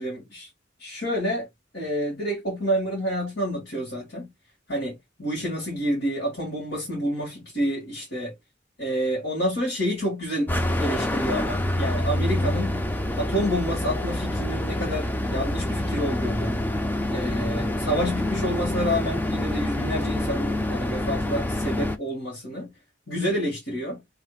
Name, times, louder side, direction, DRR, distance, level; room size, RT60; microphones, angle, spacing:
voice 1, 0.0-0.5 0.8-1.5 1.7-4.3 4.7-8.4 8.8-10.5 10.8-12.7 13.2-16.6 17.1-22.7 23.1-24.0, equal, 65° left, 2.0 m, -28 dB
sound 1, 10.5-22.0, left 1 dB, 10° left, 0.4 m, -27 dB
4.9 x 3.3 x 2.3 m
head